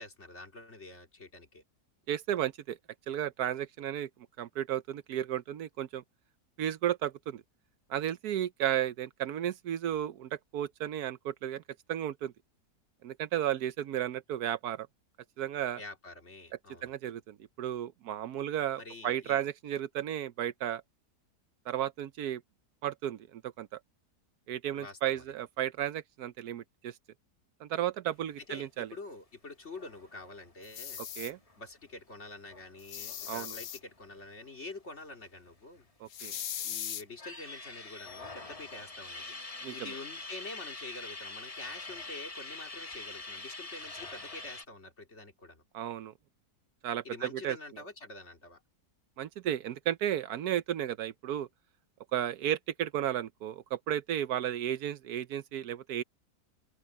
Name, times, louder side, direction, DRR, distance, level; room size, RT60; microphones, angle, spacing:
voice 1, 0.0-1.6 15.8-16.9 18.7-19.5 24.7-25.2 28.5-31.0 31.6-35.9 36.6-39.3 39.7-45.6 47.0-48.6, left 2 dB, 45° left, 3.0 m, -47 dB
voice 2, 2.1-2.8 3.1-4.1 4.4-6.0 6.6-7.4 7.9-11.6 11.9-12.3 13.0-14.9 15.4-15.8 16.8-20.8 21.7-22.4 22.8-23.8 24.5-26.9 27.6-28.9 31.2-31.4 33.3-33.5 36.0-36.3 39.6-39.7 45.7-46.1 46.8-47.6 49.2-51.5 52.1-56.0, right 11 dB, 75° right, 1.2 m, -33 dB
sound 1, 29.7-34.8 35.1-35.2 35.5-36.4 36.9-44.6, left 3 dB, 20° left, 1.6 m, -45 dB
sound 2, 30.6-31.3 32.8-33.8 36.1-37.0, left 10 dB, 65° left, 1.3 m, -39 dB
open air
omnidirectional pair, 1.7 m